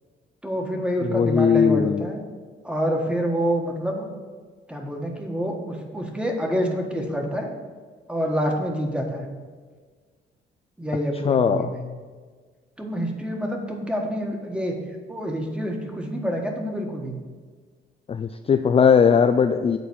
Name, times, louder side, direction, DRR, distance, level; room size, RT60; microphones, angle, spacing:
voice 1, 0.4-2.2 2.6-4.1 4.7-7.5 8.1-9.3 10.8-11.8 12.8-14.7 15.1-17.2, equal, 5° right, 1 dB, 1.5 m, -27 dB
voice 2, 1.0-2.0 11.2-11.7 18.1-19.8, left 6 dB, 30° left, 8 dB, 0.3 m, -19 dB
8.2 x 4.1 x 6.2 m, 1.5 s
cardioid pair, 90°, 20 cm